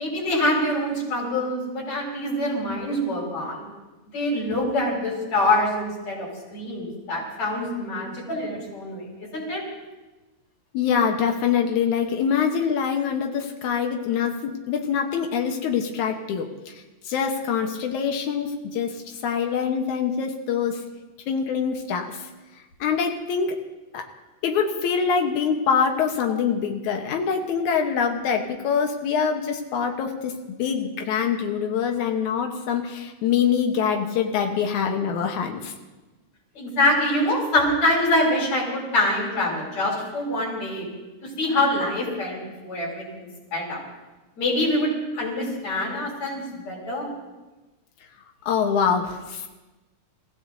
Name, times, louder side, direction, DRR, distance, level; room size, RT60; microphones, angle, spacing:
voice 1, 0.0-3.7 4.1-9.6 36.5-40.9 41.2-43.8 44.4-47.1, left 1 dB, 65° left, -4 dB, 6.8 m, -25 dB
voice 2, 10.7-20.8 21.3-22.3 22.8-23.6 23.9-24.0 24.4-35.7 48.5-49.5, left 7 dB, 85° left, 3 dB, 2.5 m, -24 dB
29.5 x 16.0 x 2.7 m, 1.1 s
omnidirectional pair, 3.3 m